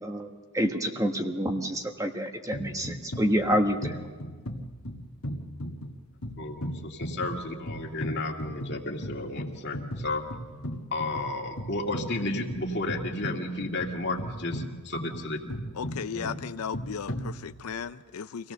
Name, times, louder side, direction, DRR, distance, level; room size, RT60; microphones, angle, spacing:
voice 1, 0.0-3.9, equal, 15° right, 4 dB, 1.4 m, -28 dB
sound 1, 2.5-17.9, equal, 70° left, 1.9 m, -38 dB
voice 2, 6.4-10.2 10.9-15.5 15.9-16.3, left 2 dB, 50° left, 1 dB, 2.2 m, -33 dB
voice 3, 15.8-18.5, left 6 dB, 85° left, 10 dB, 0.5 m, -36 dB
25.0 x 17.0 x 6.8 m, 1.5 s
head